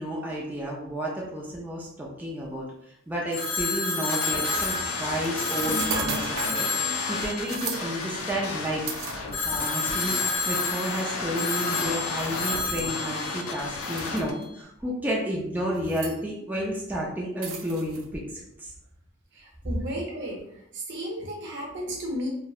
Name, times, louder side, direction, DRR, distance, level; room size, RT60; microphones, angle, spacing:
voice 1, 0.0-2.6 3.1-8.9 9.4-18.7, equal, 10° right, -4 dB, 0.3 m, -31 dB
Telephone, 3.3-8.6 9.3-14.2, left 3 dB, 50° left, 0.7 m, -31 dB
sound 1, 4.1-14.3, left 3 dB, 90° left, 0.4 m, -33 dB
sound 2, 5.6-6.7 7.4-7.8 8.9-9.7 10.5-10.6 12.6-12.9 14.0-14.4 15.8-16.2 17.4-18.0, right 4 dB, 85° right, 0.4 m, -33 dB
voice 2, 19.3-20.4 20.7-22.3, equal, 60° right, -2 dB, 0.7 m, -33 dB
2.3 x 2.0 x 2.6 m, 0.78 s
head